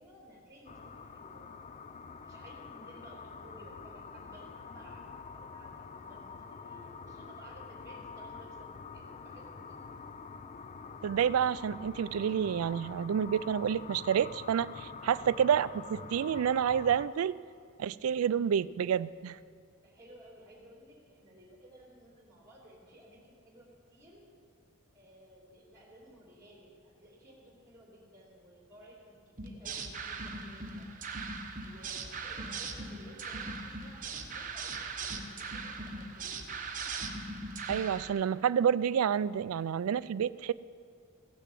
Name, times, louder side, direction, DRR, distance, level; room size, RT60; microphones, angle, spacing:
voice 1, 0.0-1.5 2.2-9.8 15.0-15.2 19.8-24.2 24.9-30.9 31.6-36.5, equal, 15° right, -4 dB, 3.1 m, -56 dB
sound 1, 0.7-17.1, left 5 dB, 30° left, 0.4 m, -46 dB
voice 2, 11.0-17.4 17.8-19.4 37.7-40.5, right 8 dB, 80° right, 18 dB, 0.3 m, -29 dB
sound 2, 29.4-38.1, right 4 dB, 40° right, 1.0 m, -39 dB
16.0 x 6.9 x 7.5 m, 2.1 s
head